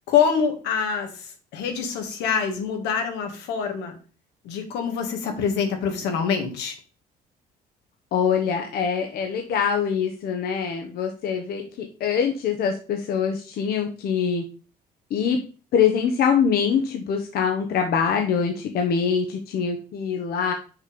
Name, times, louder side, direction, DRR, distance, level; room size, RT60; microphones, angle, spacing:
voice 1, 0.1-4.0 4.4-6.8, left 6 dB, 85° left, 4 dB, 2.1 m, -25 dB
voice 2, 8.1-14.4 15.1-15.4 15.7-20.5, left 7 dB, 65° left, 4 dB, 1.2 m, -24 dB
6.3 x 5.2 x 5.4 m, 0.37 s
cardioid pair, 110°, 17 cm